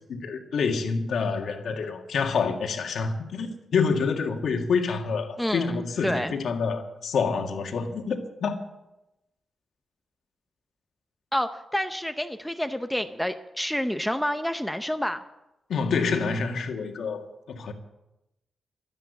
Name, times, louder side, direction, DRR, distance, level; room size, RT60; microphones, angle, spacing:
voice 1, 0.1-8.6 15.7-17.7, left 5 dB, 85° left, 1.9 m, -27 dB
voice 2, 5.4-6.3 11.3-15.2, equal, 5° left, 0.7 m, -29 dB
13.0 x 10.5 x 8.1 m
wide cardioid pair, 125°, 0 cm